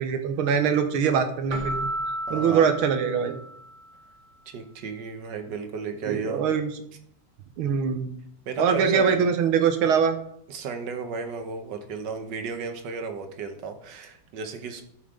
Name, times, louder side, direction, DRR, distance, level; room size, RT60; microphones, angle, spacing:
voice 1, 0.0-1.9 2.3-3.4 6.1-6.7 7.6-8.1 8.6-10.2, right 6 dB, 90° right, 7 dB, 1.8 m, -23 dB
Keyboard (musical), 1.5-3.9, right 1 dB, 40° right, 1.4 m, -33 dB
voice 2, 2.3-2.7 4.5-6.4 8.5-9.2 10.5-14.8, right 5 dB, 60° right, 6 dB, 1.6 m, -34 dB
13.0 x 5.4 x 3.8 m, 0.68 s
omnidirectional pair, 2.3 m